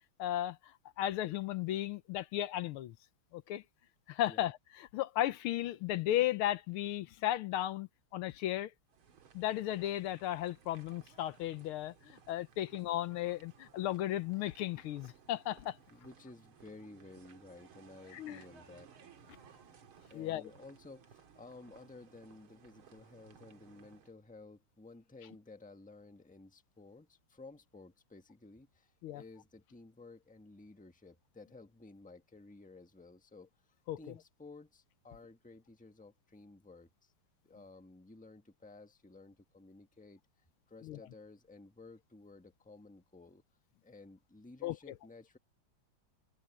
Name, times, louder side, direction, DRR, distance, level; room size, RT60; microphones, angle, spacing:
voice 1, 0.2-3.0 3.3-3.6 4.1-8.7 9.3-15.8 18.1-18.4 20.1-20.5 29.0-29.2 33.9-34.0 40.8-41.0 44.6-44.8, left 13 dB, 80° left, 1.6 m, -35 dB
sound 1, 8.9-24.1, right 6 dB, 75° right, 2.5 m, -60 dB
voice 2, 15.9-18.9 20.1-33.5 34.0-37.1 37.4-40.2 40.7-43.4 43.8-45.4, left 3 dB, 5° left, 1.1 m, -54 dB
open air
omnidirectional pair, 2.4 m